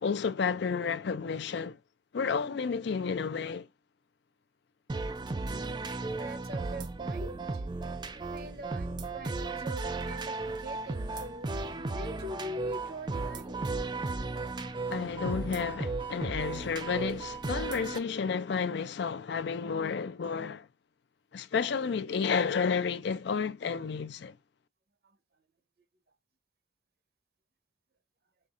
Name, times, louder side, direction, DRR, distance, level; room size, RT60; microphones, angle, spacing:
voice 1, 0.0-1.8 2.1-3.7 14.9-20.7 21.3-24.4, left 5 dB, 60° left, 0.4 m, -31 dB
sound 1, 4.9-18.0, right 3 dB, 20° right, 0.4 m, -35 dB
voice 2, 6.1-7.4 8.1-11.5 11.9-14.0, equal, 50° right, 0.8 m, -42 dB
5.6 x 3.6 x 2.5 m
head